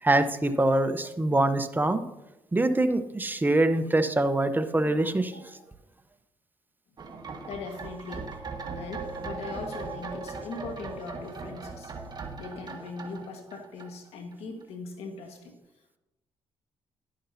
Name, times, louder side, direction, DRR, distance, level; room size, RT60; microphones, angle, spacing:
voice 1, 0.0-2.0 2.5-5.4, right 2 dB, 20° right, 9 dB, 0.9 m, -24 dB
voice 2, 5.3-5.6 7.1-8.3 8.8-15.5, left 3 dB, 80° left, 3 dB, 1.6 m, -40 dB
sound 1, 7.0-14.3 14.6-14.7, right 4 dB, 40° right, 1.6 m, -39 dB
11.5 x 10.0 x 2.8 m, 0.98 s
cardioid pair, 70°, 10 cm